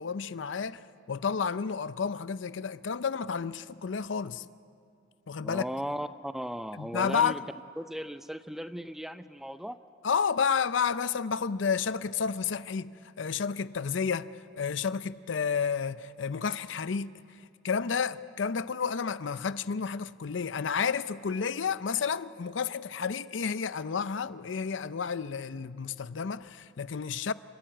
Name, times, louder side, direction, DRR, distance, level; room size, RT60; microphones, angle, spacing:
voice 1, 0.0-4.4 5.3-5.6 6.8-7.4 10.0-12.9 13.2-17.1 17.6-27.3, left 6 dB, 75° left, 0.5 m, -31 dB
voice 2, 5.4-7.4 7.8-9.8, equal, ahead, 0.5 m, -37 dB
29.5 x 13.0 x 9.0 m
head